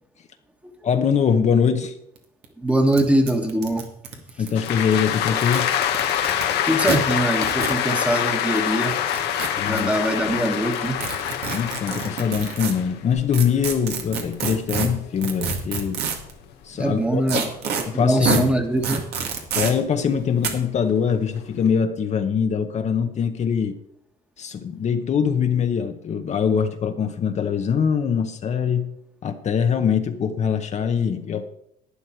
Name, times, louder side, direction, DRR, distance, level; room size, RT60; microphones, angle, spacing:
voice 1, 0.8-1.9 4.4-5.7 9.6-9.9 10.3-10.4 11.5-16.0 16.6-17.5 17.9-18.5 19.5-23.8 24.4-28.9 29.2-31.4, left 7 dB, 40° left, 6 dB, 0.9 m, -23 dB
sound 1, 2.2-2.3 2.4-2.5 2.9-3.0 3.3-4.7 5.3-6.4 6.8-7.0 7.4-7.8 8.9-9.8 11.0-12.7 13.3-16.3 17.3-17.8 18.2-18.4 18.8-19.7 20.4-20.5, right 6 dB, 75° right, 1.9 m, -27 dB
voice 2, 2.6-3.8 6.6-8.9 9.6-11.1 16.7-17.5 17.9-19.0, right 1 dB, 5° right, 5 dB, 1.5 m, -22 dB
sound 2, 4.6-17.0 17.4-19.6 20.0-21.7, left 10 dB, 85° left, 1.2 m, -26 dB
11.5 x 9.6 x 4.5 m, 0.77 s
cardioid pair, 110°, 17 cm